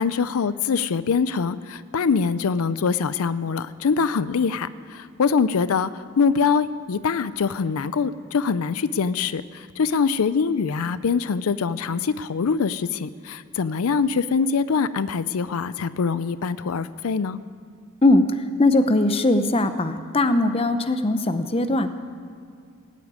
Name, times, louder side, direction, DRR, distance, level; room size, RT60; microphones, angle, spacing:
voice 1, 0.0-5.9 6.2-17.4, left 5 dB, 85° left, 15 dB, 0.5 m, -23 dB
voice 2, 18.6-21.9, left 2 dB, 25° left, 9 dB, 0.7 m, -20 dB
18.0 x 8.4 x 9.6 m, 2.3 s
head